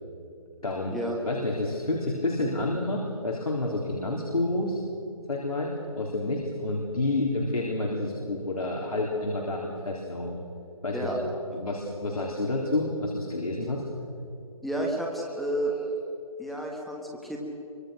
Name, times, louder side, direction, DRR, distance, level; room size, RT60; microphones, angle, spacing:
voice 1, 0.6-1.0 1.2-4.8 5.3-10.4 10.8-11.1 11.5-13.8, left 2 dB, 75° left, -2 dB, 4.0 m, -29 dB
voice 2, 14.6-15.7 16.4-17.4, right 1 dB, ahead, -1 dB, 1.4 m, -31 dB
24.0 x 24.0 x 6.5 m, 2.8 s
figure-of-eight pair, 160°, 19 cm